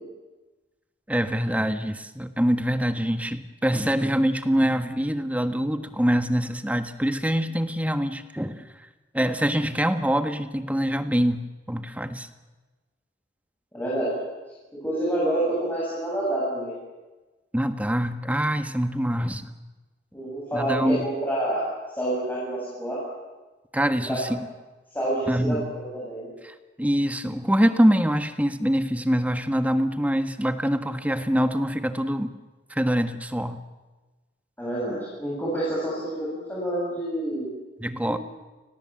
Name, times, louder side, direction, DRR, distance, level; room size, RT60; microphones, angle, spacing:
voice 1, 1.1-8.7 9.1-12.3 17.5-19.5 20.5-21.0 23.7-24.4 25.3-25.7 26.4-32.3 32.7-33.6 37.8-38.2, equal, 10° right, 8 dB, 1.4 m, -24 dB
voice 2, 13.7-14.1 14.7-16.7 20.1-23.0 24.1-24.3 24.9-26.3 34.6-37.5, right 1 dB, 10° left, -7 dB, 7.8 m, -28 dB
29.5 x 20.5 x 7.6 m, 1.2 s
head